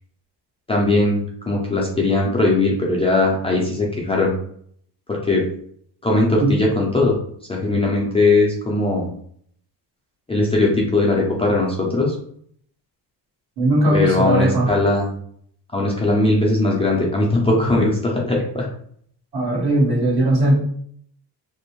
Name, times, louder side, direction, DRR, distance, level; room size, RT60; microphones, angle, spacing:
voice 1, 0.7-4.4 5.1-5.4 6.0-7.2 7.5-9.1 10.3-12.2 13.9-15.1 15.7-18.7, left 2 dB, 15° left, -3 dB, 0.4 m, -19 dB
voice 2, 13.6-14.7 19.3-20.6, right 1 dB, 70° right, -4 dB, 1.4 m, -18 dB
2.5 x 2.0 x 2.9 m, 0.63 s
cardioid pair, 130°, 40 cm